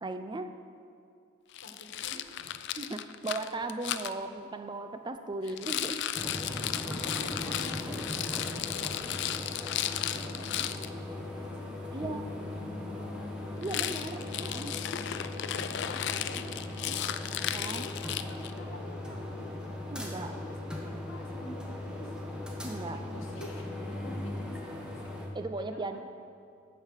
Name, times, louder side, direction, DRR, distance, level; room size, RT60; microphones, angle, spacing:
voice 1, 0.0-0.6 2.8-6.0 11.9-12.3 13.6-14.7 17.5-17.9 19.9-20.4 22.6-23.0 25.3-26.0, right 2 dB, 25° right, 8 dB, 0.5 m, -37 dB
Rattle, 1.5-4.1 5.5-10.9 13.6-18.6, left 11 dB, 60° left, 0.4 m, -35 dB
voice 2, 1.6-2.8 5.4-5.7 6.7-7.9 8.3-13.4 13.8-14.2 15.3-17.0 17.6-19.5 20.3-22.1 22.8-25.0 25.6-26.0, left 1 dB, 85° left, 2 dB, 1.4 m, -49 dB
sound 1, 6.1-25.3, left 1 dB, 5° right, 1.1 m, -39 dB
sound 2, 12.0-21.6, left 3 dB, 35° left, 0.9 m, -49 dB
9.3 x 7.3 x 6.5 m, 2.5 s
head